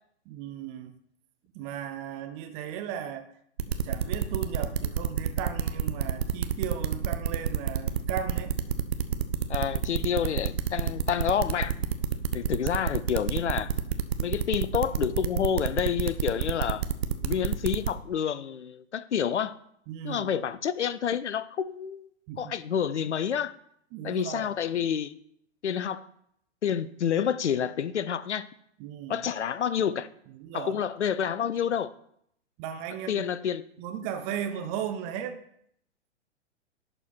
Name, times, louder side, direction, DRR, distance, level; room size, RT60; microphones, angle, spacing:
voice 1, 0.3-0.9 1.5-3.3 3.7-8.5 19.9-20.3 22.3-22.5 23.9-24.5 28.8-29.3 30.3-30.8 32.6-33.3 33.8-35.4, right 9 dB, 20° right, 0.4 m, -36 dB
sound 1, 3.6-17.9, right 9 dB, 60° right, 0.7 m, -28 dB
voice 2, 9.5-11.7 12.3-13.7 14.2-16.9 17.2-19.6 20.0-22.1 22.4-23.5 24.0-25.1 25.6-26.1 26.6-28.5 29.1-30.1 30.5-31.9 33.1-33.6, left 8 dB, 75° left, 0.5 m, -28 dB
11.0 x 4.4 x 4.1 m
figure-of-eight pair, 110°, 36 cm